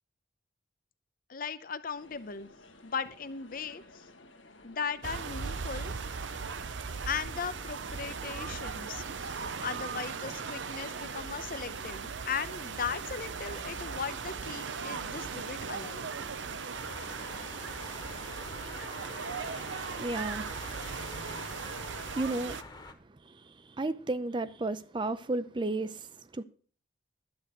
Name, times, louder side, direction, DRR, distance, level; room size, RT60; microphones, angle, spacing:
voice 1, 1.3-2.5 2.8-4.0 4.6-5.9 7.1-16.1, left 6 dB, 50° left, 0.7 m, -38 dB
sound 1, 2.0-20.2, left 2 dB, 85° left, 1.6 m, -54 dB
sound 2, 5.0-22.6, right 5 dB, 75° right, 0.7 m, -38 dB
sound 3, 16.7-22.9, left 2 dB, 25° left, 1.2 m, -45 dB
voice 2, 20.0-20.5 22.1-22.6 23.3-26.1 26.3-26.4, right 2 dB, 25° right, 0.5 m, -33 dB
11.5 x 8.0 x 6.0 m
head